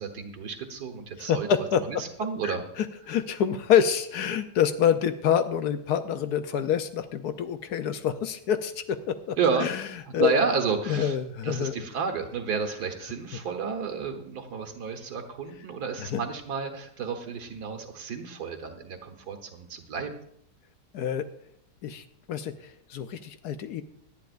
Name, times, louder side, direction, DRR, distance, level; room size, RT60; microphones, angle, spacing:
voice 1, 0.0-1.5 1.8-2.6 9.4-9.7 10.2-11.2 11.4-20.1, right 5 dB, 70° right, 5 dB, 1.9 m, -31 dB
voice 2, 1.2-2.0 2.4-9.9 10.1-10.3 10.9-11.9 16.0-16.2 20.9-21.3 21.8-23.8, left 8 dB, 70° left, 10 dB, 1.2 m, -27 dB
18.5 x 11.5 x 2.5 m, 0.70 s
omnidirectional pair, 1.8 m